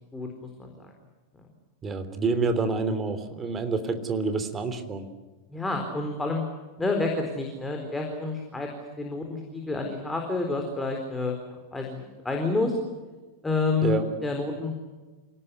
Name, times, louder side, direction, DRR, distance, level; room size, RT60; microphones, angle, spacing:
voice 1, 0.1-0.7 5.5-6.4 6.8-8.7 9.0-11.3 11.7-12.7 13.4-14.8, left 3 dB, 10° left, 2 dB, 4.1 m, -29 dB
voice 2, 1.8-5.1 13.8-14.1, right 4 dB, 20° right, 9 dB, 3.3 m, -27 dB
28.0 x 18.5 x 9.8 m, 1.3 s
figure-of-eight pair, 90°, 0 cm